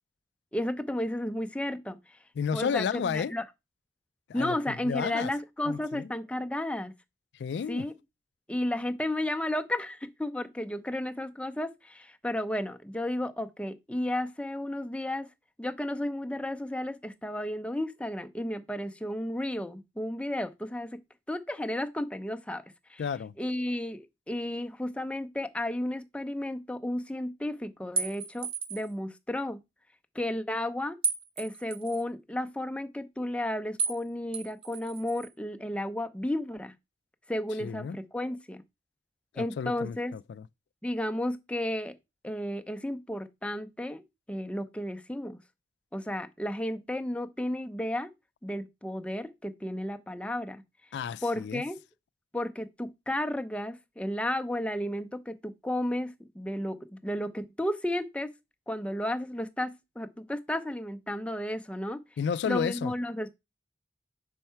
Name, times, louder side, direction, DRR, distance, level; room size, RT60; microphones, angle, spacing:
voice 1, 0.5-2.2 2.5-3.4 4.3-6.9 7.7-7.9 8.5-15.3 15.6-21.0 21.3-22.6 22.9-23.0 23.4-29.6 30.1-31.0 31.4-36.7 37.3-38.6 39.3-40.1 40.8-41.9 42.2-44.0 44.3-45.4 45.9-48.1 48.4-50.6 51.2-51.8 52.3-58.3 58.7-62.0 62.5-63.3, left 1 dB, 5° left, 0.5 m, -33 dB
voice 2, 2.4-3.3 4.3-5.3 5.7-6.1 7.3-7.9 23.0-23.3 37.6-38.0 39.4-40.5 50.9-51.6 62.2-62.9, left 6 dB, 75° left, 0.3 m, -32 dB
sound 1, 28.0-28.9 31.0-32.0 33.8-34.0 34.3-35.3, right 5 dB, 30° right, 0.8 m, -33 dB
5.5 x 4.4 x 5.6 m
head